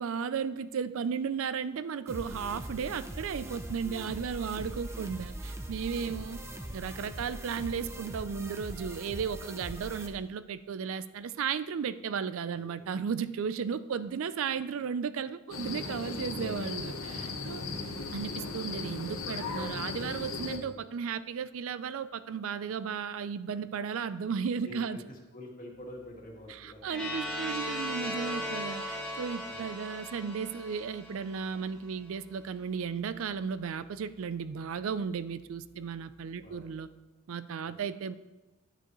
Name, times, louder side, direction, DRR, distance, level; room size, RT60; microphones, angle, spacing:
voice 1, 0.0-6.4 6.7-17.6 18.1-25.0 26.6-36.9 37.3-38.2, right 6 dB, 65° right, 14 dB, 0.4 m, -35 dB
sound 1, 2.1-10.1, right 1 dB, 15° right, 0.6 m, -41 dB
voice 2, 4.6-5.1 6.0-6.3 12.5-13.1 17.5-17.8 24.6-27.3 29.5-29.7 35.7-35.9 36.4-36.6 37.6-37.8, left 1 dB, 40° left, -1 dB, 1.9 m, -49 dB
sound 2, 15.5-20.6, left 3 dB, 70° left, 1.1 m, -37 dB
sound 3, 26.9-31.7, left 1 dB, 5° left, 1.7 m, -37 dB
10.5 x 9.1 x 3.1 m, 1.1 s
head